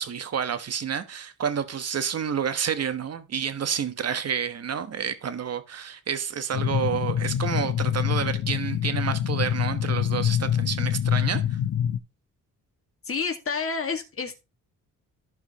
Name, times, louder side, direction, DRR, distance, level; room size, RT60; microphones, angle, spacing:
voice 1, 0.0-11.4, right 7 dB, 45° right, 1.2 m, -29 dB
sound 1, 6.5-12.0, left 10 dB, 55° left, 0.8 m, -25 dB
voice 2, 13.1-14.4, left 5 dB, 40° left, 1.9 m, -29 dB
15.0 x 4.9 x 3.0 m
cardioid pair, 105°, 35 cm